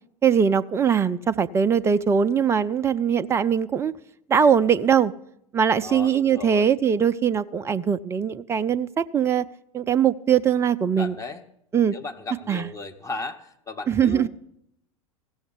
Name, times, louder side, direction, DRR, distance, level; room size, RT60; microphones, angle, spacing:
voice 1, 0.2-3.9 4.3-5.1 5.5-9.4 9.7-11.2 11.7-12.0 12.5-12.7 13.9-14.3, right 7 dB, 15° right, 0.4 m, -21 dB
voice 2, 5.8-6.7 11.0-11.4 11.9-14.3, left 3 dB, 15° left, 1.1 m, -35 dB
15.5 x 7.1 x 8.2 m
figure-of-eight pair, 85°, 18 cm